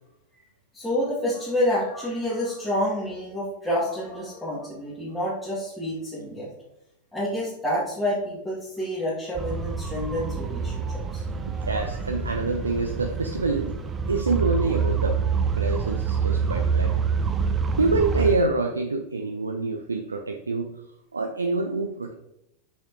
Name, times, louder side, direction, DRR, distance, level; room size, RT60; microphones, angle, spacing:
voice 1, 0.7-6.5 7.1-11.2, left 1 dB, 5° left, -10 dB, 2.2 m, -28 dB
sound 1, 9.4-18.4, right 5 dB, 20° right, 0.6 m, -27 dB
voice 2, 11.3-13.7 14.1-15.2 15.6-17.0 17.8-20.7 21.1-22.1, right 3 dB, 75° right, 4 dB, 0.5 m, -26 dB
6.4 x 5.7 x 2.9 m, 0.82 s
figure-of-eight pair, 90°, 0 cm